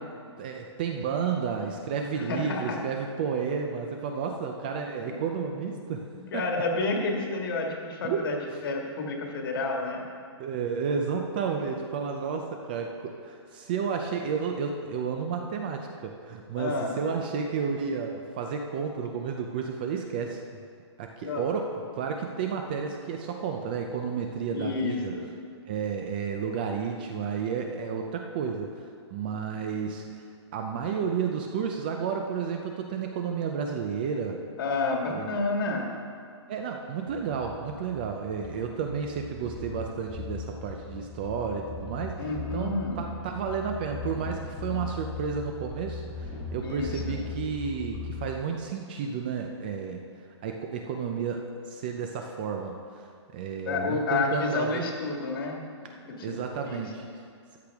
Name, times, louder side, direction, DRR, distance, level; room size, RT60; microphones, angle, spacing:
voice 1, 0.4-6.1 6.3-6.4 8.0-8.3 10.4-20.4 21.0-25.1 25.6-30.3 30.5-34.4 35.1-35.3 36.5-50.0 50.4-53.1 53.3-54.8 56.2-57.0, right 6 dB, 20° right, 3 dB, 0.4 m, -32 dB
voice 2, 2.1-2.8 5.1-5.2 5.7-5.8 6.3-8.4 8.6-10.0 16.6-16.9 21.2-21.5 24.5-25.3 34.6-35.9 42.2-43.1 46.6-47.3 53.7-55.6 56.2-56.3 56.6-57.1, left 3 dB, 50° left, 1 dB, 1.7 m, -30 dB
sound 1, 37.1-48.3, left 4 dB, 25° left, 1.3 m, -39 dB
13.0 x 8.5 x 3.5 m, 2.2 s
hypercardioid pair, 170°, 15 cm